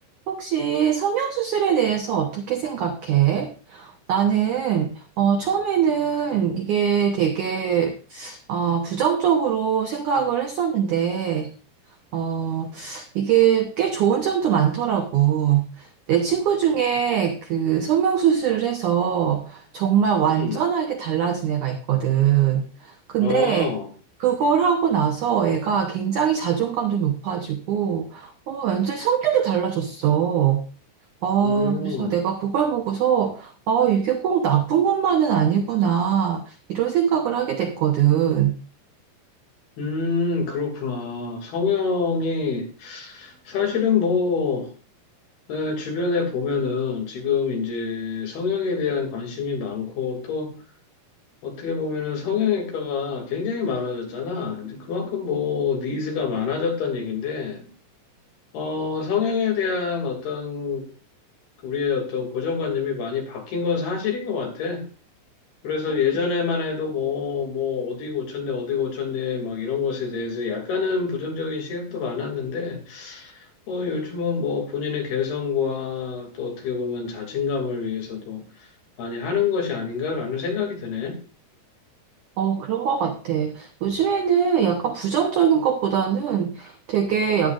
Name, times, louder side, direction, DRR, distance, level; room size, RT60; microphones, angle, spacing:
voice 1, 0.3-11.5 12.1-23.7 24.2-30.6 31.2-38.5 65.9-66.0 82.4-87.5, right 8 dB, 75° right, 4 dB, 1.8 m, -22 dB
voice 2, 20.3-20.6 23.2-23.9 31.4-32.2 39.8-44.7 45.5-50.5 51.4-57.7 58.5-60.9 61.6-64.8 65.6-78.4 79.0-81.2, left 5 dB, 65° left, 2 dB, 4.4 m, -26 dB
13.5 x 11.0 x 2.5 m, 0.38 s
omnidirectional pair, 4.9 m